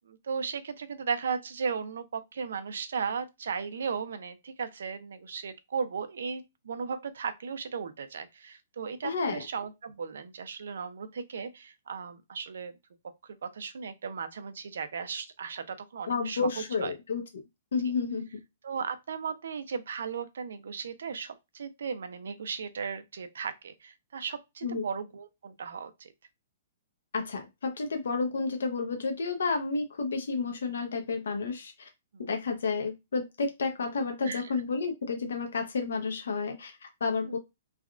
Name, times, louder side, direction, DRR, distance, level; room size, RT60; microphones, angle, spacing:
voice 1, 0.1-12.7 13.4-16.9 18.6-26.1 32.1-32.3 34.3-34.4 37.2-37.4, right 6 dB, 80° right, 0.5 m, -36 dB
voice 2, 9.0-9.4 16.1-17.2 17.7-18.4 24.6-24.8 27.1-31.9 32.3-37.4, left 4 dB, 85° left, 0.7 m, -31 dB
3.4 x 2.3 x 2.4 m
hypercardioid pair, 175°, 0 cm